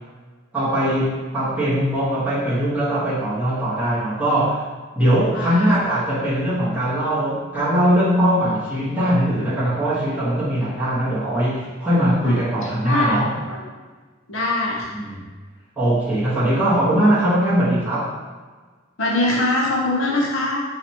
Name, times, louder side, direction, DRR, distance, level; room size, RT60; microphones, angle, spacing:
voice 1, 0.5-4.7 4.9-13.4 14.9-15.2 15.8-18.2, right 1 dB, 10° right, -11 dB, 1.0 m, -21 dB
voice 2, 5.3-5.7 12.2-13.2 13.5-13.6 14.3-14.9 19.0-20.6, left 2 dB, 90° left, -2 dB, 0.9 m, -23 dB
4.1 x 2.4 x 4.5 m, 1.4 s
head